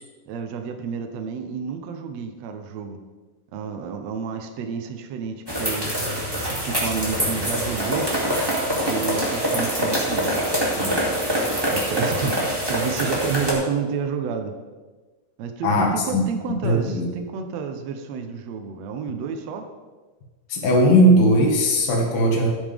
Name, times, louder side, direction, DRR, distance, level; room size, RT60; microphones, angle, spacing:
voice 1, 0.3-3.0 3.5-5.9 6.3-8.1 8.8-11.0 11.7-14.5 15.4-19.6, right 6 dB, 75° right, 6 dB, 1.5 m, -30 dB
sound 1, 5.5-13.5, equal, 10° right, 1.8 m, -24 dB
voice 2, 15.6-16.2 16.6-17.1 20.5-22.5, equal, 85° left, 0 dB, 3.6 m, -18 dB
12.5 x 11.0 x 3.5 m, 1.3 s
omnidirectional pair, 4.1 m